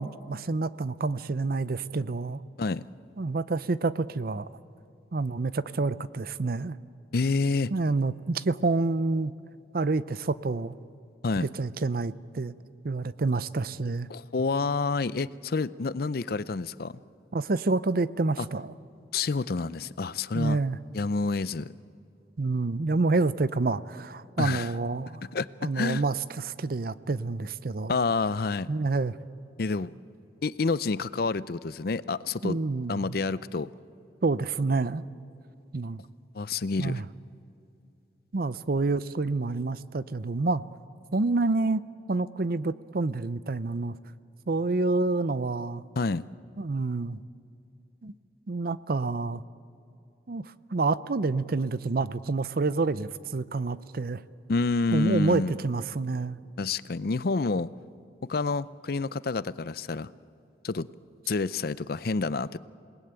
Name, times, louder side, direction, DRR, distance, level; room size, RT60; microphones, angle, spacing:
voice 1, 0.0-2.4 3.2-4.5 5.1-6.8 7.7-9.3 9.7-10.7 11.4-12.5 12.8-14.1 17.3-18.7 20.3-20.8 22.4-25.2 25.6-28.0 28.7-29.2 32.4-33.2 34.2-35.0 35.7-36.0 36.8-37.1 38.3-40.6 41.1-41.8 42.1-44.0 44.5-45.8 46.6-47.2 48.0-48.1 48.5-49.4 50.3-50.5 50.7-54.2 54.9-56.4, right 3 dB, 55° right, 15 dB, 0.6 m, -28 dB
voice 2, 7.1-7.7 11.2-11.5 14.1-16.9 18.4-18.5 19.1-20.6 20.9-21.7 24.4-24.7 25.3-26.0 27.9-28.7 29.6-29.9 30.4-32.6 32.9-33.7 36.3-37.0 46.0-46.2 54.5-55.6 56.6-57.7 58.3-60.1 60.6-60.9 61.3-62.6, left 4 dB, 55° left, 17 dB, 0.5 m, -28 dB
28.0 x 19.5 x 8.9 m, 2.6 s
head